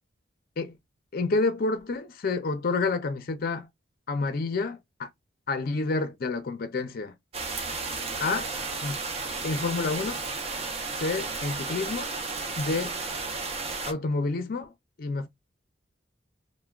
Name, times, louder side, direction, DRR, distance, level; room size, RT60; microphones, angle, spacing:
voice 1, 1.1-3.7 4.1-5.1 5.5-7.1 8.2-8.5 8.8-9.0 9.4-10.2 10.9-12.1 12.6-13.0 13.9-14.7 15.0-15.3, left 3 dB, 50° left, 0.4 m, -29 dB
sound 1, 7.3-13.9, right 4 dB, 30° right, 0.5 m, -33 dB
3.4 x 2.1 x 2.3 m
head